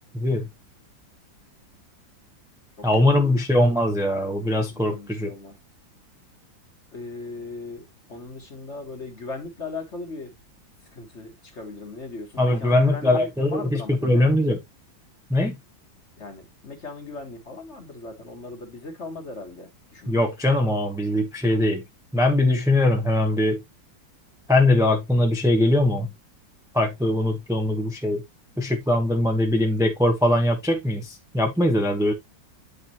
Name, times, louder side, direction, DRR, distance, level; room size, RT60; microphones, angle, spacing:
voice 1, 0.1-0.5 2.8-5.3 12.4-14.6 15.3-15.5 20.1-21.8 22.1-23.6 24.5-26.1 26.7-28.2 28.6-32.1, left 1 dB, ahead, 0.8 m, -21 dB
voice 2, 4.7-5.5 6.9-10.3 10.9-14.3 16.2-20.2, left 3 dB, 35° left, 1.8 m, -38 dB
8.9 x 5.4 x 3.0 m
omnidirectional pair, 2.1 m